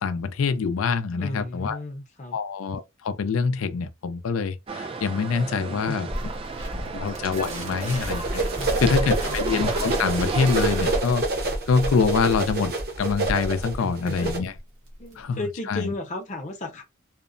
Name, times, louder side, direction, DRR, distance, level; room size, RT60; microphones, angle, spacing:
voice 1, 0.0-1.8 2.3-6.1 6.7-8.4 8.8-11.2 11.7-14.5 15.2-15.9, left 5 dB, 90° left, 0.4 m, -25 dB
voice 2, 1.1-2.4 5.7-6.0 6.8-6.9 8.5-9.4 13.8-14.4 15.0-16.8, left 2 dB, 35° left, 0.7 m, -35 dB
sound 1, 4.7-11.0, right 4 dB, 25° right, 0.3 m, -34 dB
sound 2, 6.1-15.2, right 1 dB, 70° right, 1.3 m, -39 dB
sound 3, 8.1-14.4, right 2 dB, 50° right, 0.7 m, -27 dB
2.8 x 2.1 x 2.5 m
head